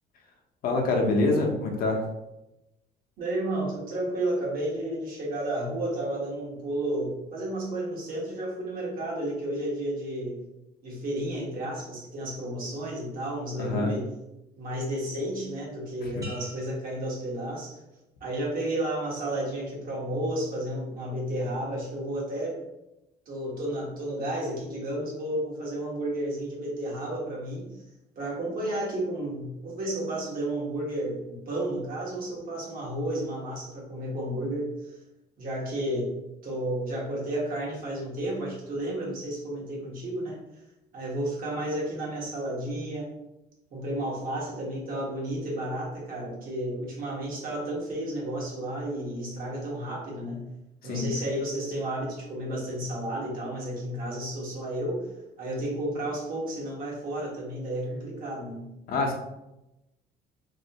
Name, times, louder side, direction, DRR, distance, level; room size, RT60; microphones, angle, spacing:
voice 1, 0.6-2.0 13.6-13.9 16.0-16.3 50.8-51.1 58.9-59.2, left 2 dB, 60° left, 1 dB, 0.7 m, -26 dB
voice 2, 3.2-10.4 10.8-14.1 14.5-17.8 18.2-22.6 23.3-27.8 28.1-35.0 35.4-36.1 36.4-40.4 40.9-43.1 43.7-50.5 50.8-58.7, right 1 dB, 60° right, -4 dB, 1.4 m, -32 dB
sound 1, 16.2-18.0 18.5-18.9, equal, 20° right, 0.9 m, -49 dB
3.1 x 2.8 x 2.9 m, 0.93 s
cardioid pair, 110°, 17 cm